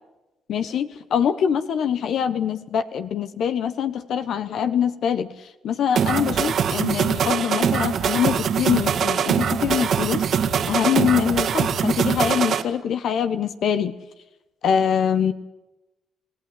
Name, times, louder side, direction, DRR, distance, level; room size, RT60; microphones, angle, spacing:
voice 1, 0.5-5.3 5.6-10.2 10.7-14.0 14.6-15.3, left 8 dB, 70° left, 11 dB, 1.2 m, -24 dB
sound 1, 6.0-12.6, right 7 dB, 65° right, 2.0 m, -22 dB
27.5 x 17.0 x 9.8 m, 1.0 s
cardioid pair, 90°, 0 cm